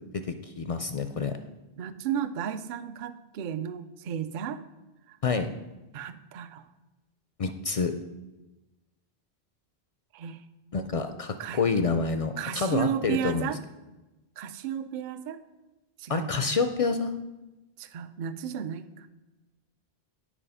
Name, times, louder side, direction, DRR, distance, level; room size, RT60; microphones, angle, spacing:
voice 1, 0.6-1.3 5.2-5.5 7.4-7.9 10.7-13.5 16.1-17.1, left 4 dB, 55° left, 8 dB, 0.4 m, -27 dB
voice 2, 1.8-4.6 5.1-5.2 5.9-6.6 10.1-10.4 11.4-11.6 12.4-13.6 14.4-15.4 16.0-16.6 17.8-19.1, right 9 dB, 60° right, 11 dB, 0.6 m, -33 dB
8.9 x 4.7 x 5.5 m, 1.1 s
omnidirectional pair, 1.0 m